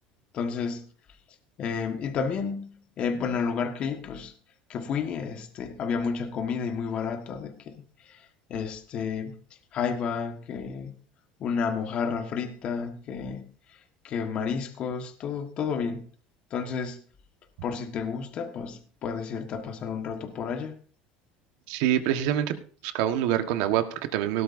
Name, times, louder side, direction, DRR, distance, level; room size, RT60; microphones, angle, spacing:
voice 1, 0.3-0.9 1.6-4.3 4.7-7.7 8.1-8.2 8.5-9.3 9.7-10.9 11.4-13.5 14.0-16.0 16.5-17.0 17.6-20.8, left 6 dB, 40° left, 1.5 m, -31 dB
voice 2, 21.7-22.5 22.8-24.4, right 11 dB, 75° right, 1.4 m, -25 dB
17.5 x 12.5 x 2.7 m
cardioid pair, 140°, 3 cm